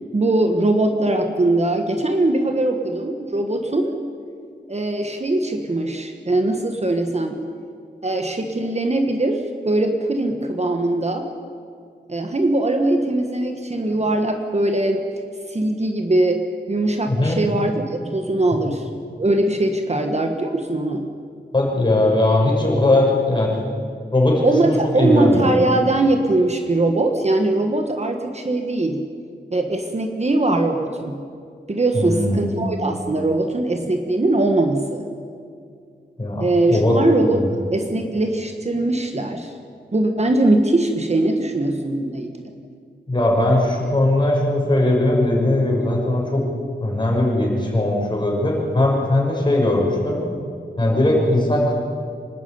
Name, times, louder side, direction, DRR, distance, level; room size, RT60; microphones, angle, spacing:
voice 1, 0.1-3.9 4.7-7.4 8.0-11.3 12.1-15.0 15.5-18.9 19.2-21.1 24.4-29.0 29.5-31.2 31.7-35.0 36.4-37.4 37.7-39.5 39.9-42.4, right 2 dB, 35° right, 4 dB, 1.5 m, -21 dB
voice 2, 17.1-17.4 21.5-23.5 24.1-25.5 31.9-32.7 36.2-37.0 37.3-37.5 43.1-46.4 46.8-50.2 50.8-51.7, left 1 dB, 25° left, -3 dB, 6.4 m, -19 dB
26.0 x 12.5 x 9.6 m, 2.3 s
wide cardioid pair, 120°, 18 cm